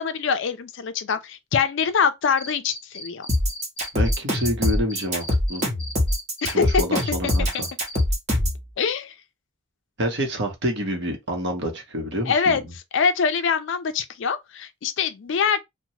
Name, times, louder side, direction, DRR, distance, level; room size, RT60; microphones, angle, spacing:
voice 1, 0.0-3.3 6.4-6.8 8.8-9.1 12.3-12.6 12.9-15.6, left 6 dB, 60° left, 0.4 m, -24 dB
Cricket, 2.4-8.0, left 1 dB, 30° left, 0.7 m, -37 dB
sound 1, 3.3-8.6, left 1 dB, 35° right, 1.0 m, -23 dB
voice 2, 3.9-5.6 6.5-7.7 10.0-12.6, equal, 55° right, 0.8 m, -27 dB
3.0 x 2.1 x 2.7 m
head